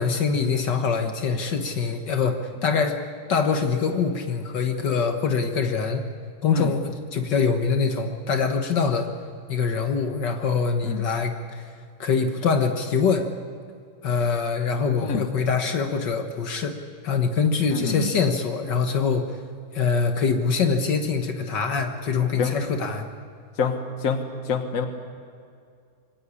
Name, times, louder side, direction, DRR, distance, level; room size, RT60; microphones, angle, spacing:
voice 1, 0.0-3.0 3.3-6.1 6.4-9.1 9.5-11.6 12.0-13.3 14.0-16.8 17.0-19.3 19.7-23.1, left 5 dB, 65° left, 5 dB, 2.0 m, -24 dB
voice 2, 17.7-18.1 22.4-22.5 23.6-23.8 24.0-24.2 24.5-24.9, left 6 dB, 45° left, 6 dB, 1.8 m, -26 dB
23.0 x 17.5 x 9.8 m, 2.3 s
omnidirectional pair, 2.1 m